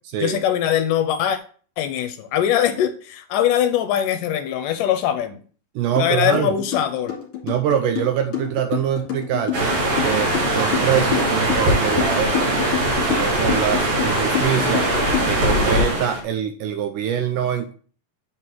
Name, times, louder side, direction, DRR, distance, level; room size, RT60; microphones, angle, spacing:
voice 1, 0.2-1.4 1.8-5.4 6.0-7.2, left 10 dB, 80° left, 9 dB, 2.1 m, -21 dB
voice 2, 5.8-6.5 7.4-9.8 10.0-12.7 13.0-14.9 15.3-17.7, right 9 dB, 80° right, 7 dB, 2.0 m, -24 dB
sound 1, 6.0-6.1 6.3-15.5, left 10 dB, 45° left, 2.9 m, -27 dB
sound 2, 9.5-16.2, right 1 dB, 55° right, 2.6 m, -21 dB
8.4 x 4.7 x 3.7 m, 0.42 s
omnidirectional pair, 4.1 m